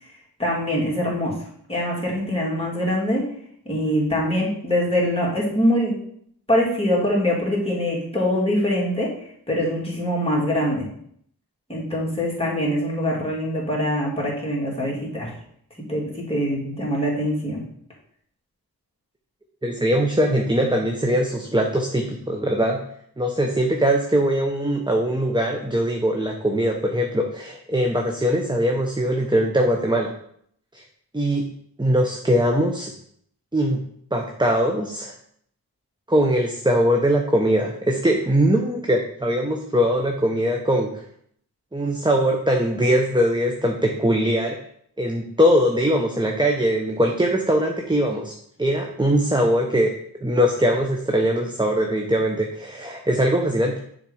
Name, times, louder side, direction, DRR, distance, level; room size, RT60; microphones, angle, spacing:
voice 1, 0.4-1.3 1.7-3.2 3.7-6.0 6.5-9.1 9.5-10.8 11.7-15.3 15.8-17.6, equal, 15° left, -5 dB, 2.6 m, -23 dB
voice 2, 19.6-22.8 23.2-30.1 30.7-30.8 31.1-31.5 31.8-32.9 33.5-33.8 34.1-35.1 36.1-41.0 41.7-44.6 45.0-49.9 50.2-53.8, equal, 10° right, 2 dB, 0.8 m, -21 dB
6.7 x 4.0 x 4.9 m, 0.66 s
wide cardioid pair, 50°, 39 cm